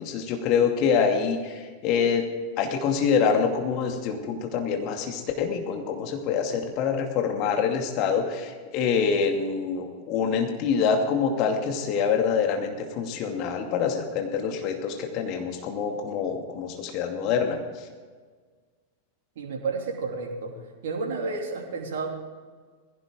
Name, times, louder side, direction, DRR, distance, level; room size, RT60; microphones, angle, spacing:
voice 1, 0.0-2.2 2.6-17.6, left 6 dB, 40° left, 3 dB, 2.4 m, -26 dB
voice 2, 19.4-20.5 20.8-22.1, right 4 dB, 55° right, 1 dB, 2.9 m, -31 dB
20.5 x 16.0 x 3.8 m, 1.5 s
figure-of-eight pair, 90°, 0 cm